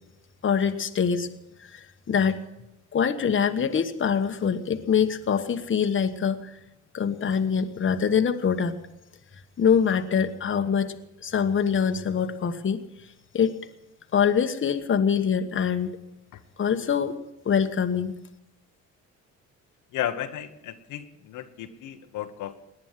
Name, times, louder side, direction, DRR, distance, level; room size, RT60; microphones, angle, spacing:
voice 1, 0.4-1.3 1.6-2.4 2.9-6.5 6.9-8.7 9.6-10.9 11.2-12.8 13.3-13.6 14.1-15.9 16.6-17.2 17.4-18.1, left 7 dB, 40° left, 7 dB, 1.2 m, -24 dB
voice 2, 19.9-22.6, left 11 dB, 90° left, 6 dB, 1.2 m, -34 dB
18.0 x 10.5 x 7.4 m, 0.91 s
cardioid pair, 90°, 30 cm